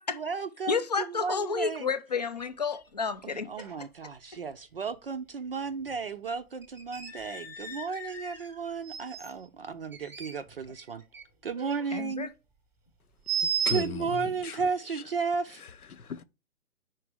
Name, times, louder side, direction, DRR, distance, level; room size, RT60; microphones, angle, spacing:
voice 1, 0.1-1.9 3.2-11.0 11.4-12.3 13.7-15.6, right 5 dB, 40° right, 0.5 m, -34 dB
voice 2, 0.7-3.5 11.9-12.3, left 5 dB, 30° left, 0.4 m, -30 dB
sound 1, 2.4-2.5 2.8-2.9 3.5-3.9 4.2-4.3 5.9-6.0 6.6-9.3 9.9-11.2 11.5-11.9 13.3-13.9, right 7 dB, 5° right, 1.0 m, -35 dB
voice 3, 13.4-14.6 14.9-15.0 15.6-16.2, left 5 dB, 75° left, 0.9 m, -37 dB
5.0 x 4.5 x 4.5 m
figure-of-eight pair, 140°, 44 cm